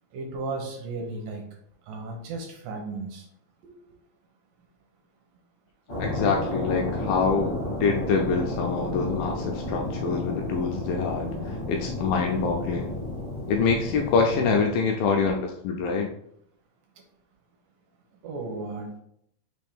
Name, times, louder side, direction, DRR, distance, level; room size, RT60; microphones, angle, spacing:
voice 1, 0.1-1.4 1.9-3.3 18.2-19.0, right 3 dB, 80° right, 2 dB, 2.2 m, -34 dB
sound 1, 5.9-14.6, left 1 dB, 55° left, 1.0 m, -32 dB
voice 2, 6.0-7.5 7.8-13.0 13.5-16.1, left 5 dB, 85° left, 1 dB, 2.0 m, -25 dB
6.0 x 2.5 x 3.5 m, 0.72 s
omnidirectional pair, 4.4 m